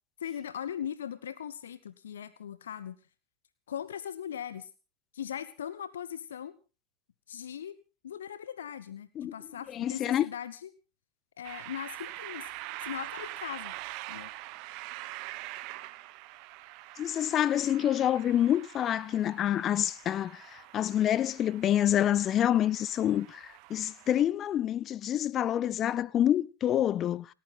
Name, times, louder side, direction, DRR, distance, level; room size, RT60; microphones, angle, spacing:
voice 1, 0.2-3.0 3.7-4.7 5.1-6.5 7.3-7.8 8.0-10.7 11.4-12.5 12.8-13.7 14.1-14.3, left 9 dB, 65° left, 1.0 m, -39 dB
voice 2, 9.7-10.3 17.0-27.3, left 11 dB, 30° left, 0.7 m, -27 dB
sound 1, 11.4-24.2, right 17 dB, 40° right, 1.0 m, -44 dB
29.0 x 9.6 x 3.9 m
figure-of-eight pair, 90°, 0 cm